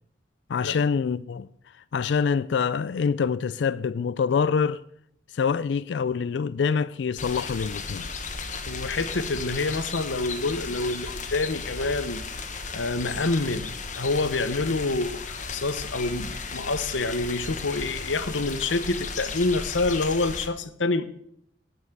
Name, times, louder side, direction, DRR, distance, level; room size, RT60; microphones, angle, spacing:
voice 1, 0.5-1.5 1.9-4.8 5.3-8.1, left 6 dB, 70° left, 0.4 m, -25 dB
sound 1, 7.2-20.5, left 4 dB, 40° left, 1.2 m, -35 dB
voice 2, 8.7-12.2 12.7-15.2 15.5-21.0, left 3 dB, 85° left, 0.9 m, -27 dB
12.5 x 5.5 x 7.9 m
head